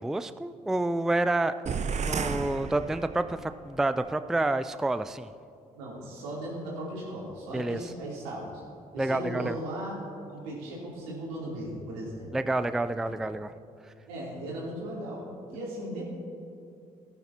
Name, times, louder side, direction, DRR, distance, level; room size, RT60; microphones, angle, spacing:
voice 1, 0.0-1.5 2.0-5.3 7.5-7.8 9.0-9.6 12.3-13.5, right 2 dB, ahead, 11 dB, 0.4 m, -28 dB
sound 1, 1.7-3.5, right 5 dB, 35° right, 0.7 m, -32 dB
voice 2, 5.7-8.5 8.9-9.9 10.3-12.3 12.9-13.3 14.1-15.2 15.5-16.0, right 1 dB, 80° right, -5 dB, 3.1 m, -37 dB
18.0 x 9.4 x 2.9 m, 2.4 s
hypercardioid pair, 45°, 20 cm